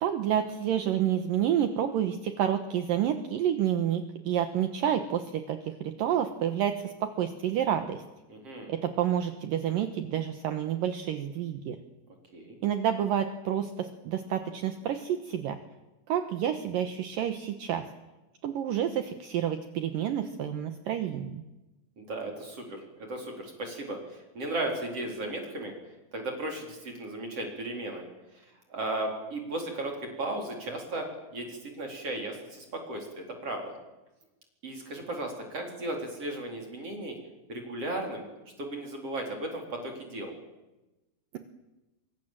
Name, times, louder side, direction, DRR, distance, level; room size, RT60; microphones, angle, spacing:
voice 1, 0.0-8.0 8.7-11.8 12.6-15.6 16.1-17.8 18.4-21.4, right 10 dB, 70° right, 7 dB, 2.2 m, -29 dB
voice 2, 8.3-8.7 12.3-12.6 22.0-25.7 26.1-28.0 28.7-29.9 30.2-33.6 34.6-37.1 37.5-38.3 38.6-40.3, right 1 dB, 30° right, 2 dB, 4.7 m, -35 dB
26.0 x 24.0 x 7.6 m, 1.0 s
omnidirectional pair, 5.5 m